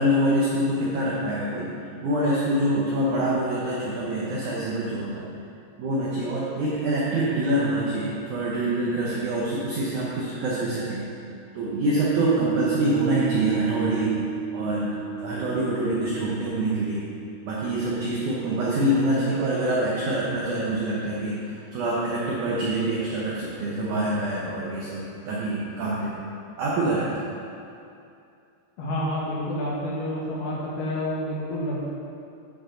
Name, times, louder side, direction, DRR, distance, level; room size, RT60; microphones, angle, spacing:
voice 1, 0.0-1.7 2.0-5.2 5.8-11.1 11.5-14.1 14.5-17.0 17.4-26.2 26.6-27.2, right 1 dB, 90° right, -6 dB, 1.7 m, -25 dB
Piano, 12.2-18.9, right 6 dB, 60° right, 2.6 m, -33 dB
voice 2, 28.8-31.9, left 1 dB, 70° left, -6 dB, 3.1 m, -29 dB
11.0 x 6.8 x 3.8 m, 2.6 s
omnidirectional pair, 5.1 m